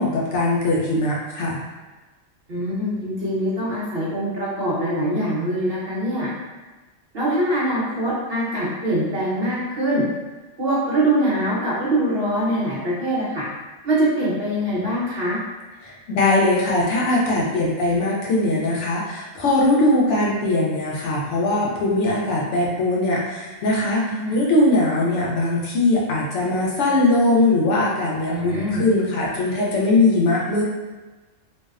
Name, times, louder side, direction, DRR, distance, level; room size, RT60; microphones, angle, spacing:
voice 1, 0.0-1.6 15.8-30.6, left 2 dB, 70° left, -5 dB, 0.8 m, -20 dB
voice 2, 2.5-6.3 7.1-10.0 10.6-13.4 13.8-15.4 24.2-24.4 28.3-28.8, right 1 dB, 55° right, -8 dB, 0.8 m, -23 dB
2.6 x 2.0 x 2.4 m, 1.2 s
omnidirectional pair, 1.3 m